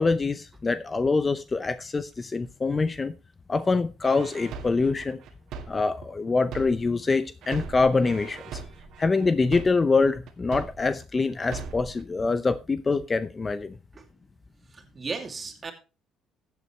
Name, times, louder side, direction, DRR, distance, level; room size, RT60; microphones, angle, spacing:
voice 1, 0.0-3.1 3.5-5.2 5.7-8.4 9.0-13.7, left 4 dB, 25° left, 0.6 m, -25 dB
sound 1, 4.0-7.0 7.4-11.0 11.4-12.0, right 5 dB, 70° right, 1.9 m, -40 dB
voice 2, 14.7-15.7, right 4 dB, 30° right, 2.6 m, -35 dB
14.5 x 8.2 x 3.2 m
cardioid pair, 100°, 0 cm